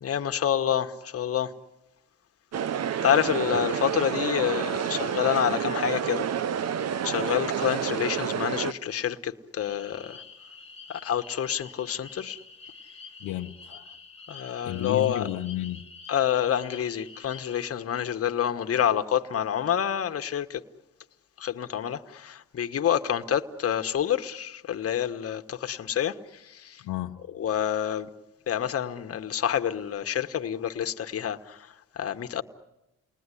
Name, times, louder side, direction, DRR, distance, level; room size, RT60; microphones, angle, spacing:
voice 1, 0.0-1.5 3.0-6.2 7.0-10.2 10.9-12.4 14.3-15.2 16.1-20.6 21.4-26.2 26.4-26.8 27.4-28.1 28.5-31.7 32.0-32.4, left 9 dB, 50° left, 1.4 m, -28 dB
sound 1, 2.5-8.7, right 8 dB, 60° right, 1.0 m, -29 dB
sound 2, 9.6-17.6, left 5 dB, 20° left, 2.1 m, -47 dB
voice 2, 13.2-14.0 14.6-15.9 26.8-27.2, left 13 dB, 85° left, 0.9 m, -33 dB
29.5 x 20.5 x 9.9 m
cardioid pair, 90°, 30 cm